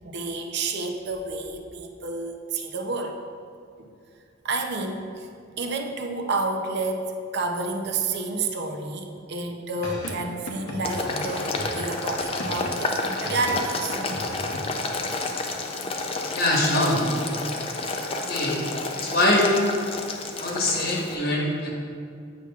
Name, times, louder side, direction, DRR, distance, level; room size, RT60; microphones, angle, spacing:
voice 1, 0.0-3.1 3.8-3.9 4.4-5.3 5.6-14.0, right 3 dB, 50° right, 4 dB, 0.5 m, -30 dB
sound 1, 9.8-12.8 13.3-14.6, left 1 dB, 65° left, 0.8 m, -35 dB
Boiling, 10.8-21.2, left 3 dB, 25° left, 0.4 m, -30 dB
voice 2, 16.3-17.0 18.3-18.6 18.9-19.5 20.4-21.7, left 1 dB, 45° left, -2 dB, 1.1 m, -23 dB
8.5 x 5.8 x 2.4 m, 2.3 s
head